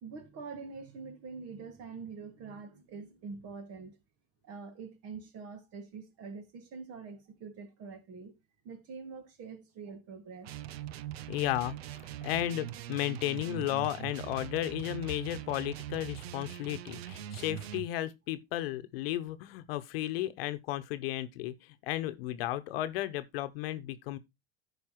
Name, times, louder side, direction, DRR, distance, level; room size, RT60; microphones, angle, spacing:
voice 1, 0.0-4.0 4.4-8.3 8.6-10.5, right 5 dB, 50° right, 2.1 m, -45 dB
sound 1, 10.4-17.9, right 12 dB, 80° right, 0.5 m, -42 dB
voice 2, 11.3-24.2, left 14 dB, 70° left, 1.0 m, -34 dB
14.5 x 5.0 x 3.0 m
hypercardioid pair, 80°, 31 cm